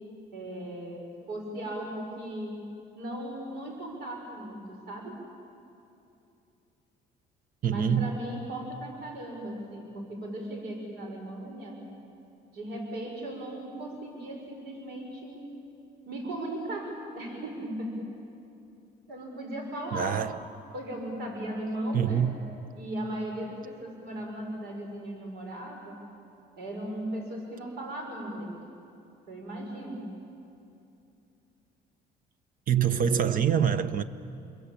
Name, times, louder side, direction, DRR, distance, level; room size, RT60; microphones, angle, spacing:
voice 1, 0.3-2.5 2.9-5.2 7.6-11.8 12.5-15.5 16.0-17.9 19.1-20.2 20.7-22.3 22.7-26.0 26.5-28.5 29.3-30.0, right 1 dB, 70° right, 6.3 m, -37 dB
voice 2, 7.6-8.1 19.9-20.4 21.9-22.4 32.7-34.0, right 8 dB, 55° right, 1.2 m, -25 dB
29.5 x 22.5 x 8.7 m
cardioid pair, 110°, 17 cm